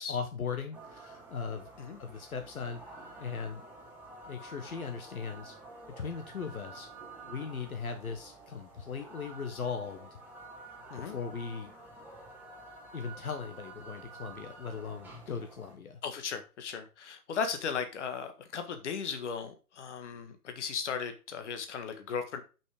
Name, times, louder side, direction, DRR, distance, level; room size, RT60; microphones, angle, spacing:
voice 1, 0.1-1.7 2.0-2.8 3.2-3.6 4.3-5.6 5.9-6.9 7.2-10.2 11.0-11.7 12.9-16.0, left 5 dB, 65° left, 6 dB, 1.3 m, -38 dB
sound 1, 0.7-15.7, right 2 dB, 5° right, 1.5 m, -50 dB
voice 2, 16.0-22.4, left 6 dB, 50° left, 7 dB, 1.6 m, -36 dB
6.1 x 5.9 x 5.1 m, 0.33 s
figure-of-eight pair, 135°, 46 cm